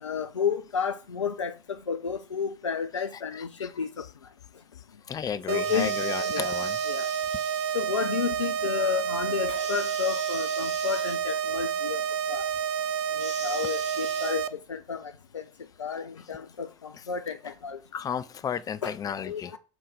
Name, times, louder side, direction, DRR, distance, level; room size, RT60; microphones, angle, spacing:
voice 1, 0.0-4.1 5.5-5.9 6.2-7.1 7.7-12.0 12.3-12.5 13.2-15.4 15.8-17.8 18.8-19.6, left 7 dB, 85° left, 0.4 m, -32 dB
voice 2, 5.1-6.8 17.9-19.5, left 8 dB, 25° left, 0.5 m, -33 dB
sound 1, 5.5-14.5, right 8 dB, 60° right, 0.5 m, -29 dB
sound 2, 5.6-7.8 9.5-11.2 13.2-14.3, right 1 dB, 80° right, 2.2 m, -42 dB
6.1 x 3.9 x 4.9 m
figure-of-eight pair, 75°, 15 cm